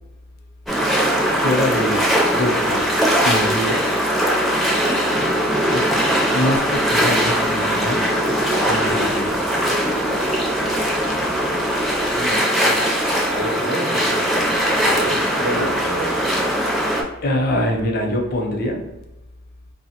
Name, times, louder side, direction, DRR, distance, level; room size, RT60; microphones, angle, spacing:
sound 1, 0.7-17.0, equal, ahead, 0.4 m, -20 dB
voice 1, 1.3-2.0 2.3-2.8 3.2-3.8 5.7-5.9 6.3-8.0 8.7-9.3 15.5-15.7 17.2-18.8, left 1 dB, 50° left, 2 dB, 0.5 m, -23 dB
voice 2, 12.0-14.5 14.8-16.2, equal, 85° right, 0 dB, 0.7 m, -30 dB
3.1 x 2.0 x 2.8 m, 0.96 s
head